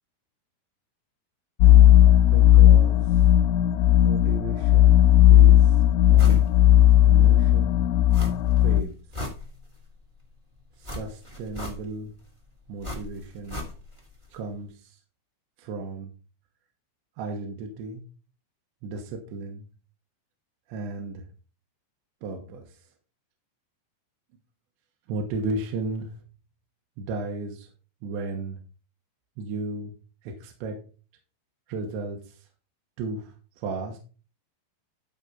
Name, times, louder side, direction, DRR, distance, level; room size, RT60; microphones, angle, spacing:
sound 1, 1.6-8.8, left 12 dB, 85° left, 2.6 m, -16 dB
voice 1, 2.2-3.2 4.0-5.8 6.1-6.4 7.1-7.9 8.6-9.0 10.8-12.1 12.7-13.6 14.3-15.0 15.6-16.1 17.2-18.0 18.8-19.7 20.7-21.2 22.2-22.8 25.1-26.1 27.0-27.7 28.0-28.6 29.4-29.9 30.2-30.8 31.7-32.4 33.0-33.3 33.6-34.0, right 3 dB, 70° right, 2 dB, 3.2 m, -34 dB
sound 2, 6.2-6.5 6.9-7.0 8.1-8.6 8.9-9.9 10.8-12.1 12.8-14.1 14.3-14.4, left 2 dB, 40° right, 0.4 m, -36 dB
12.0 x 4.1 x 5.5 m, 0.36 s
omnidirectional pair, 5.7 m